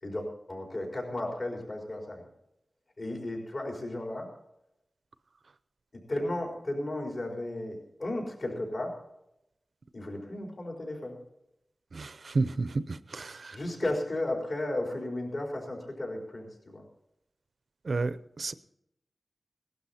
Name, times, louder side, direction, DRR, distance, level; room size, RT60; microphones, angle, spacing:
voice 1, 0.0-2.3 3.0-4.3 5.9-9.0 9.9-11.2 13.5-16.8, left 1 dB, 60° left, 0 dB, 4.4 m, -34 dB
voice 2, 11.9-13.5 17.9-18.5, right 3 dB, 65° right, 14 dB, 0.7 m, -31 dB
18.5 x 12.0 x 4.3 m, 0.80 s
wide cardioid pair, 85°, 0 cm